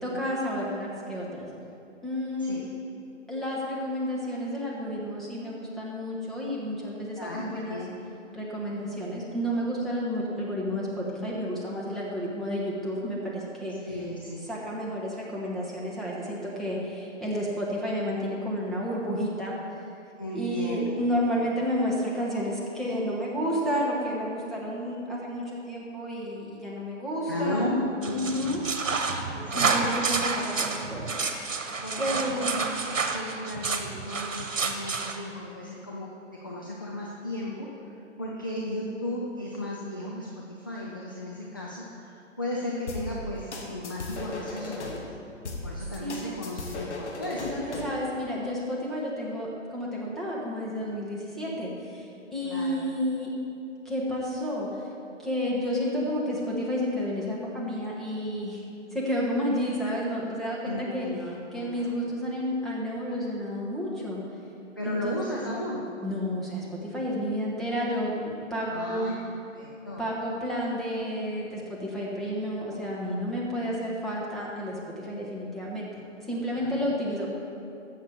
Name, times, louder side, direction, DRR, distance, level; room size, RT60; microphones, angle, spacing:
voice 1, 0.0-1.5 2.0-2.6 3.3-7.8 8.3-13.7 14.5-19.5 20.3-27.8 28.1-28.6 29.5-32.5 46.0-46.3 47.4-53.3 53.8-54.8 55.2-58.6 58.9-61.1 61.5-64.2 64.8-65.2 66.0-69.1 70.0-75.9 76.3-77.3, equal, ahead, -6 dB, 1.1 m, -31 dB
voice 2, 7.2-7.9 13.8-14.5 20.2-21.0 21.3-21.5 27.3-28.6 29.3-29.8 31.8-36.1 36.4-37.7 38.2-45.2 45.6-47.6 52.4-52.8 60.6-61.9 64.8-65.9 68.7-69.2 69.5-70.1 76.6-76.8, left 1 dB, 20° left, -4 dB, 0.3 m, -35 dB
diablito de cascos de refresco, 28.0-35.2, right 4 dB, 90° right, 1.2 m, -29 dB
sound 1, 42.9-45.0 45.5-48.0, left 2 dB, 65° left, 2.0 m, -36 dB
15.0 x 6.6 x 4.6 m, 2.6 s
hypercardioid pair, 145°, 38 cm